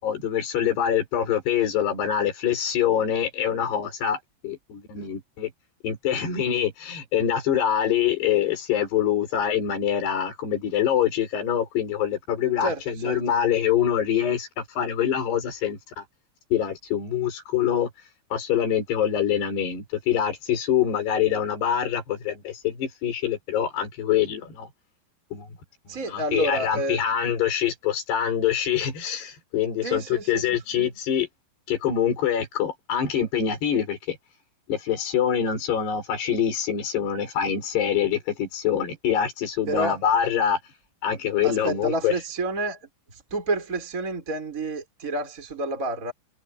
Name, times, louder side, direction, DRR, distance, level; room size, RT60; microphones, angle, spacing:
voice 1, 0.0-5.5 5.8-16.0 16.5-17.9 18.3-24.7 25.3-25.5 26.1-31.3 31.7-34.2 34.7-40.6 41.0-42.1, left 9 dB, 70° left, 7.3 m, -25 dB
voice 2, 12.6-13.2 25.9-27.1 29.8-30.6 39.7-40.0 41.4-42.8 43.1-46.1, right 1 dB, 20° right, 5.1 m, -29 dB
omnidirectional pair, 4.9 m